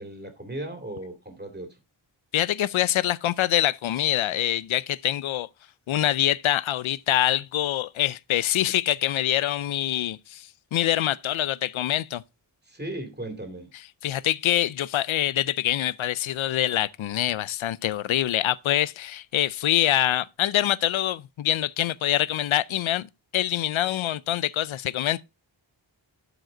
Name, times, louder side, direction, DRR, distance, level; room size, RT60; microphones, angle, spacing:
voice 1, 0.0-1.8 12.6-13.7, right 1 dB, 20° right, 2.4 m, -36 dB
voice 2, 2.3-5.5 5.9-12.2 14.0-23.1 23.3-25.2, left 12 dB, 90° left, 0.5 m, -25 dB
12.0 x 5.1 x 3.8 m
wide cardioid pair, 120°, 46 cm